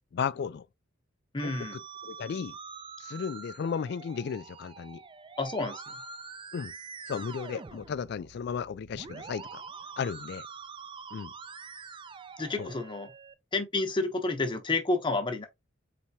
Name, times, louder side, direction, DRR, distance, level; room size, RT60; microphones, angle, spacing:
voice 1, 0.1-0.7 1.4-2.6 3.0-5.0 6.5-6.7 7.1-9.6 10.0-10.5 11.1-11.3 12.6-12.7, left 6 dB, 60° left, 0.3 m, -35 dB
voice 2, 1.3-1.8 5.4-5.8 12.4-13.1 13.5-15.5, left 3 dB, 25° left, 0.8 m, -30 dB
Musical instrument, 1.4-13.3, right 5 dB, 25° right, 0.4 m, -45 dB
4.2 x 3.3 x 2.8 m
head